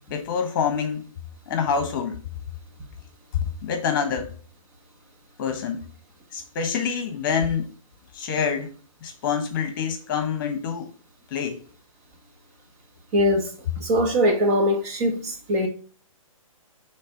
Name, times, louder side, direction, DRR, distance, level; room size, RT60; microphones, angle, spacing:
voice 1, 0.1-1.1 1.5-2.2 3.6-4.3 5.4-5.9 6.3-7.7 8.1-8.7 9.0-10.9 11.3-11.6, left 6 dB, 40° left, 1.1 m, -26 dB
voice 2, 13.1-13.5 13.8-15.7, equal, 30° right, 1.2 m, -21 dB
6.5 x 3.5 x 4.5 m
hypercardioid pair, 150°, 18 cm